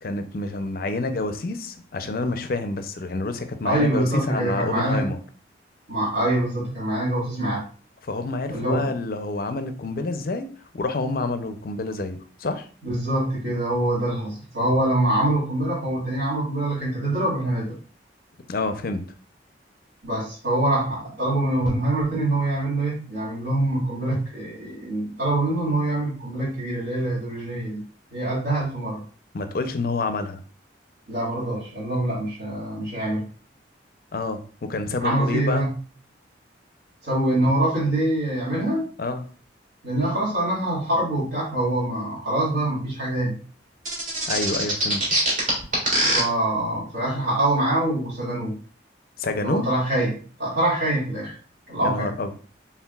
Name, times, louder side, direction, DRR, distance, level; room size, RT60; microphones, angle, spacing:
voice 1, 0.0-5.2 8.0-10.5 10.7-12.7 18.5-19.0 29.3-30.4 34.1-35.6 39.0-39.2 44.3-45.0 49.2-49.7 51.8-52.3, left 3 dB, 50° left, 9 dB, 0.5 m, -28 dB
voice 2, 3.6-5.0 5.9-7.7 8.5-8.9 12.8-17.7 20.0-27.8 28.1-29.0 31.1-33.2 35.0-35.7 37.0-38.9 39.8-43.4 46.1-48.6 49.4-51.3 51.7-52.2, right 1 dB, 65° right, -9 dB, 2.0 m, -24 dB
sound 1, 43.9-46.2, right 1 dB, 45° right, 1.8 m, -22 dB
4.5 x 3.5 x 2.3 m, 0.40 s
head